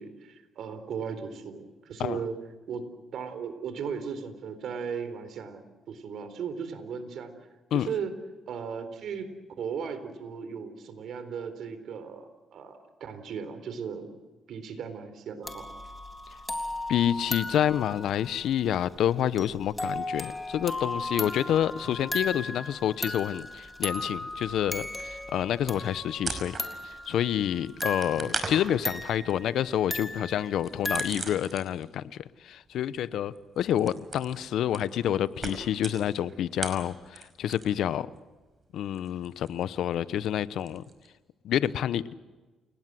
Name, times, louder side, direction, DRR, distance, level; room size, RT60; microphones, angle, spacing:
voice 1, 0.0-2.4 2.7-2.9 3.1-5.6 5.9-7.3 7.7-8.2 8.5-14.1 14.5-15.7 28.1-28.4, right 6 dB, 70° right, 10 dB, 4.1 m, -36 dB
sound 1, 15.4-31.1, left 2 dB, 15° left, 3.7 m, -36 dB
voice 2, 16.9-26.5 27.1-32.0 32.4-38.1 38.7-40.8 41.4-42.0, left 10 dB, 75° left, 16 dB, 0.9 m, -28 dB
sound 2, 23.2-24.0 24.3-27.0 27.3-32.0 32.3-37.9 38.1-41.1, right 4 dB, 35° right, 5.5 m, -40 dB
29.5 x 19.0 x 7.7 m, 1.2 s
cardioid pair, 90°, 0 cm